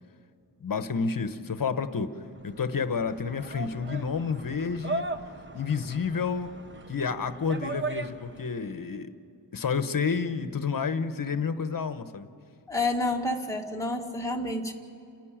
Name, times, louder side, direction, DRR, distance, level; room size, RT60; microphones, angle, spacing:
voice 1, 0.6-2.1 2.4-5.1 5.5-6.5 6.9-9.1 9.5-12.3, left 5 dB, 55° left, 10 dB, 1.0 m, -30 dB
sound 1, 2.2-8.6, right 2 dB, 30° right, 1.0 m, -38 dB
voice 2, 12.7-14.7, left 2 dB, 5° left, 0 dB, 1.8 m, -29 dB
29.5 x 10.5 x 8.8 m, 2.5 s
wide cardioid pair, 140°, 41 cm